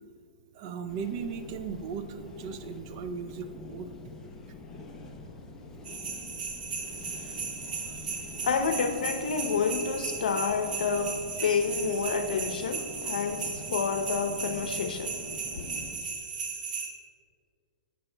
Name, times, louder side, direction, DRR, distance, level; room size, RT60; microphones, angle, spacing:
voice 1, 0.5-3.9 10.9-11.0 11.4-11.6 13.0-13.1, right 6 dB, 30° right, 0.5 m, -37 dB
windplant fafe, 0.9-16.0, left 3 dB, 10° left, 0.7 m, -46 dB
sound 1, 5.8-16.9, right 5 dB, 80° right, 1.4 m, -36 dB
voice 2, 6.8-15.3 15.6-15.7, left 5 dB, 75° left, 0.8 m, -30 dB
14.0 x 8.0 x 2.2 m
hypercardioid pair, 160°, 5 cm